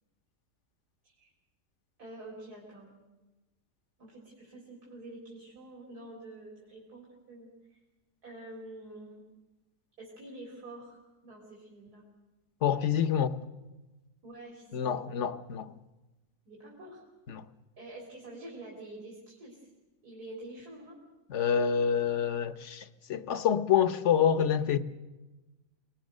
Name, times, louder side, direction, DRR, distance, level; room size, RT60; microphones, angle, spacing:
voice 1, 2.0-3.0 4.0-7.8 8.2-9.2 10.0-11.0 11.2-12.0 14.2-15.0 16.5-17.0 17.8-19.7 20.0-21.0, right 1 dB, 85° right, 4.8 m, -47 dB
voice 2, 12.6-13.3 14.7-15.7 17.3-17.5 21.3-24.8, left 8 dB, 55° left, 1.2 m, -27 dB
28.0 x 20.5 x 6.5 m
omnidirectional pair, 1.6 m